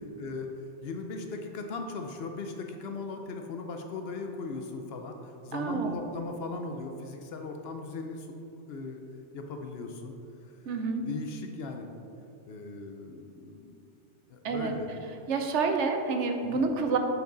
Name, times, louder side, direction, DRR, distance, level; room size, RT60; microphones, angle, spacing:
voice 1, 0.8-8.3 8.7-9.0 9.3-10.1 11.0-11.9 12.5-13.8 14.3-14.9 16.4-16.6, left 3 dB, 65° left, 4 dB, 0.8 m, -38 dB
voice 2, 5.5-5.9 10.7-11.1 14.4-14.7 15.3-17.0, right 4 dB, 75° right, 5 dB, 1.0 m, -28 dB
7.8 x 4.7 x 3.9 m, 2.7 s
omnidirectional pair, 1.2 m